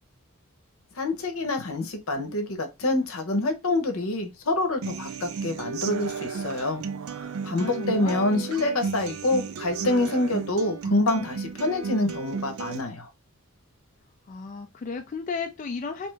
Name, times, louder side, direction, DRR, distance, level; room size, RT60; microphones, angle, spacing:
voice 1, 1.0-6.8 7.4-13.1, left 2 dB, 75° left, 0.8 m, -26 dB
Human voice / Acoustic guitar, 4.8-12.8, right 5 dB, 75° right, 0.4 m, -34 dB
voice 2, 7.5-8.3 14.3-16.1, left 4 dB, 35° left, 0.3 m, -34 dB
3.2 x 2.9 x 3.2 m
head